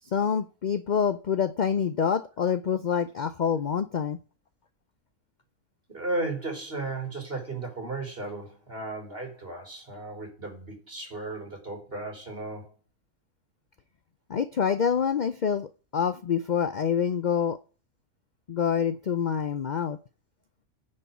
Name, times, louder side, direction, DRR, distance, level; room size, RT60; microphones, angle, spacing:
voice 1, 0.0-4.2 14.3-17.6 18.5-20.0, left 7 dB, 60° left, 0.4 m, -26 dB
voice 2, 5.9-12.8, right 2 dB, 40° right, 3.7 m, -35 dB
9.9 x 5.5 x 8.3 m
omnidirectional pair, 1.5 m